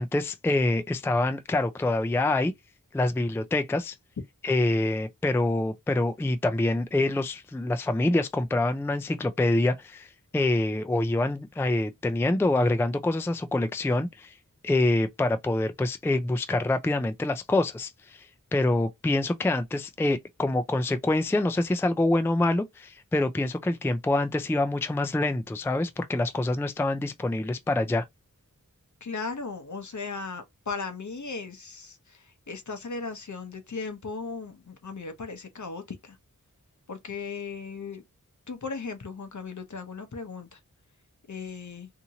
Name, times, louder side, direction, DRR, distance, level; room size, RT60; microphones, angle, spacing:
voice 1, 0.0-2.5 2.9-4.0 4.4-14.3 14.6-28.0, left 2 dB, 5° left, 0.3 m, -26 dB
voice 2, 29.0-36.2 36.9-38.0 38.5-40.6 41.3-41.9, left 4 dB, 60° left, 0.7 m, -37 dB
2.8 x 2.6 x 2.7 m
wide cardioid pair, 55°, 34 cm